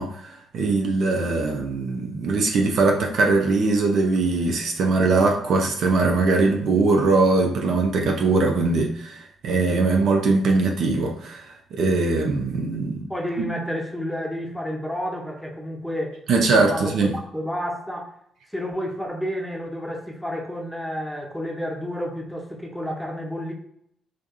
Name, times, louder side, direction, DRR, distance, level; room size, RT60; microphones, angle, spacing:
voice 1, 0.0-13.0 16.3-17.1, right 3 dB, 55° right, 2 dB, 0.4 m, -21 dB
voice 2, 13.1-18.1 18.5-23.5, equal, 5° left, 0 dB, 0.7 m, -30 dB
3.5 x 2.5 x 2.3 m, 0.71 s
figure-of-eight pair, 45°, 0 cm